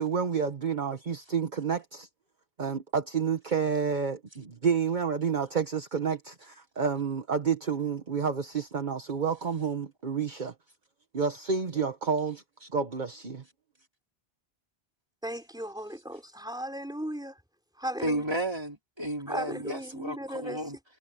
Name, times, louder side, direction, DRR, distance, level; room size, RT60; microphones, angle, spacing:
voice 1, 0.0-2.1 2.6-10.5 11.1-13.4, right 6 dB, 50° right, 1.4 m, -29 dB
voice 2, 15.2-17.3 17.8-18.2 19.3-20.6, equal, 5° right, 4.1 m, -36 dB
voice 3, 18.0-20.8, right 1 dB, 25° right, 3.7 m, -33 dB
omnidirectional pair, 1.1 m